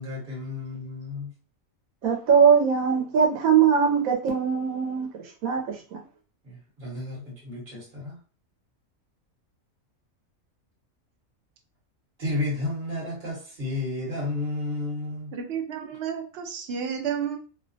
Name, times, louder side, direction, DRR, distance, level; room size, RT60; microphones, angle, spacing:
voice 1, 0.0-1.3 6.4-8.2 12.2-15.3, left 2 dB, 40° right, 1.1 m, -32 dB
voice 2, 2.0-6.0, right 7 dB, 85° right, 1.1 m, -21 dB
voice 3, 15.3-17.4, right 7 dB, 60° right, 0.7 m, -31 dB
2.8 x 2.1 x 2.6 m
omnidirectional pair, 1.4 m